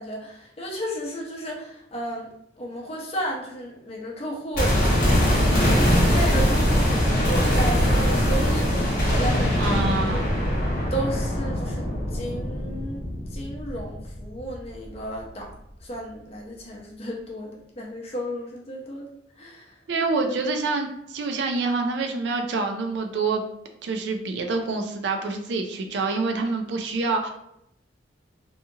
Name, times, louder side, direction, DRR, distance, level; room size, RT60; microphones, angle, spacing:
voice 1, 0.0-2.3 2.6-8.7 9.1-9.8 10.1-10.2 10.9-13.0 13.3-15.5 15.8-19.1 19.4-19.7, equal, 35° left, -1 dB, 0.6 m, -33 dB
sound 1, 4.6-14.6 14.9-15.0, equal, 50° left, 1.0 m, -22 dB
voice 2, 9.6-10.3 19.9-23.4 23.8-27.3, right 3 dB, 70° right, 4 dB, 0.4 m, -26 dB
2.7 x 2.4 x 2.7 m, 0.78 s
head